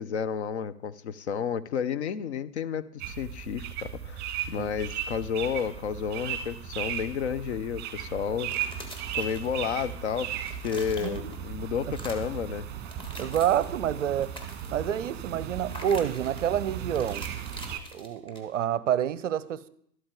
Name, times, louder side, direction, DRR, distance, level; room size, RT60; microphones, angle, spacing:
voice 1, 0.0-8.7 9.1-10.3 10.6-12.7, left 7 dB, 45° left, 0.6 m, -31 dB
sound 1, 3.0-17.8, right 9 dB, 20° right, 1.2 m, -36 dB
sound 2, 8.4-9.9 10.2-11.5 11.8-12.4 12.8-13.8 14.1-14.9 15.7-16.5 17.0-18.7, equal, 10° left, 1.5 m, -45 dB
voice 2, 11.0-11.3 13.2-14.3 14.7-17.2 17.9-19.7, right 10 dB, 50° right, 0.6 m, -28 dB
12.5 x 12.5 x 3.8 m
figure-of-eight pair, 105°, 50 cm